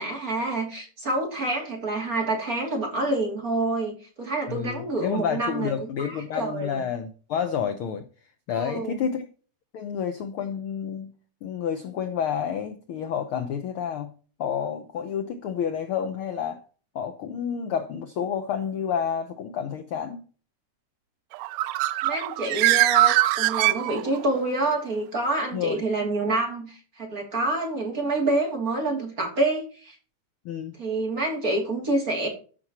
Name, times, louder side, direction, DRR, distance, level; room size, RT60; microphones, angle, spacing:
voice 1, 0.0-5.7 6.0-6.8 8.5-9.0 22.0-30.0 30.8-32.3, right 2 dB, 30° right, 2.8 m, -27 dB
voice 2, 4.5-8.1 8.5-9.3 9.7-11.1 11.4-14.1 14.4-16.6 16.9-20.2 25.5-25.8 30.4-30.8, left 8 dB, 75° left, 1.2 m, -29 dB
Bird, 21.3-24.4, right 16 dB, 80° right, 1.6 m, -22 dB
14.0 x 6.1 x 2.9 m
omnidirectional pair, 3.5 m